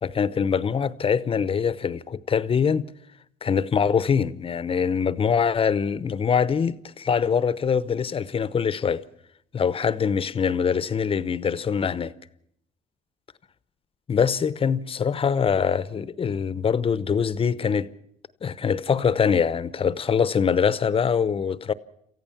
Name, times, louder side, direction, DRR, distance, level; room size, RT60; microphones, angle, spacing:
voice 1, 0.0-2.9 3.4-9.0 9.5-12.1 14.1-17.9 18.4-21.7, left 6 dB, 35° left, 0.8 m, -23 dB
27.5 x 15.0 x 7.2 m
cardioid pair, 110°, 17 cm